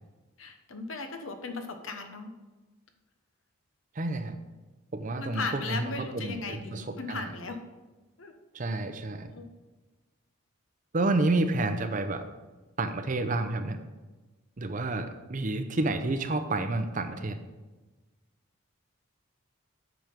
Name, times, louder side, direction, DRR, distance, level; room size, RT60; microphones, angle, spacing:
voice 1, 0.4-2.3 5.1-7.6 8.2-8.3 9.3-9.5, left 3 dB, 70° left, 6 dB, 1.0 m, -37 dB
voice 2, 4.0-4.4 4.9-7.3 8.5-9.3 10.9-12.3 12.8-13.8 14.6-17.4, right 2 dB, 35° right, 8 dB, 0.6 m, -30 dB
9.1 x 6.0 x 5.1 m, 1.2 s
head